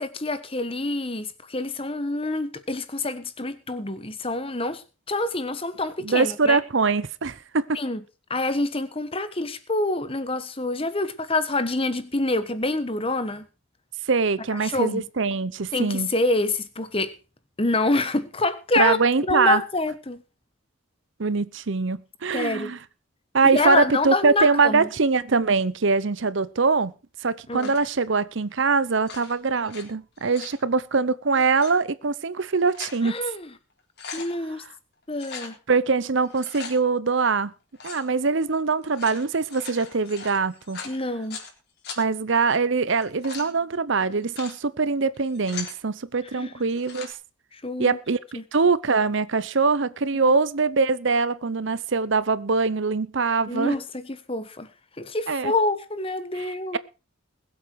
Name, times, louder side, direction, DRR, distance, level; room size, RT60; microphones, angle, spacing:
voice 1, 0.0-4.8 5.1-6.6 7.7-8.0 8.3-13.5 14.6-15.0 15.7-17.1 17.6-19.0 19.2-20.2 22.3-22.8 23.5-24.9 27.5-27.7 33.0-33.5 34.1-34.6 35.1-35.6 40.8-41.4 46.3-46.6 47.5-48.0 48.3-48.4 53.5-54.7 55.0-56.8, left 2 dB, 25° left, 1.3 m, -26 dB
voice 2, 6.0-7.8 14.1-16.1 18.8-19.6 21.2-22.8 23.3-26.9 27.2-33.2 34.6-34.7 35.7-37.5 37.8-40.8 42.0-47.1 47.8-53.8 55.3-55.5 56.4-56.5, right 4 dB, 60° right, 0.7 m, -23 dB
sound 1, 27.6-27.9 28.9-29.8 30.2-30.6 31.4-31.7 32.4-33.0 33.4-33.5 33.8-34.3 35.1-35.5 36.2-36.8 37.7-38.1 38.8-41.5 41.8-42.0 42.9-43.5 44.1-44.6 45.1-45.8 46.6-47.1, left 5 dB, 50° left, 3.8 m, -39 dB
21.0 x 8.1 x 4.7 m
head